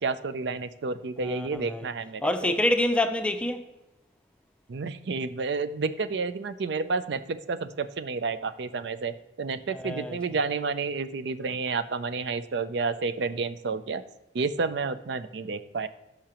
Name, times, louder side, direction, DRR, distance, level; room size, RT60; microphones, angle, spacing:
voice 1, 0.0-2.5 4.7-14.0 14.3-15.9, right 4 dB, 70° right, 0.5 m, -30 dB
voice 2, 1.2-1.9 2.2-3.7 9.7-10.2, left 1 dB, 5° left, 0.4 m, -27 dB
13.5 x 5.7 x 2.9 m
head